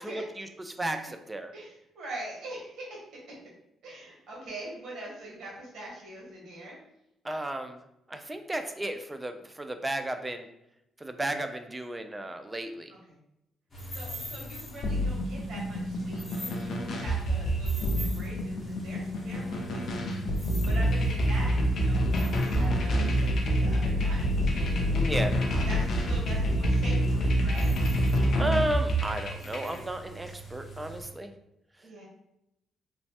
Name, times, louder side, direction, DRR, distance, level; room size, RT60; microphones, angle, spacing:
voice 1, 0.4-1.5 7.2-7.8 8.1-10.5 11.0-12.9 24.9-25.3 28.4-31.3, right 1 dB, 15° right, 7 dB, 0.3 m, -33 dB
voice 2, 1.5-3.0 3.3-3.4 3.8-6.8 13.1-13.2 13.9-24.2 24.5-24.9 25.7-27.7 31.8-32.1, right 1 dB, 65° right, -4 dB, 1.1 m, -43 dB
sound 1, 13.7-31.1, equal, 25° left, 0.8 m, -42 dB
sound 2, 14.8-29.8, equal, 60° left, 0.5 m, -27 dB
3.1 x 2.0 x 2.8 m, 0.83 s
cardioid pair, 90°, 0 cm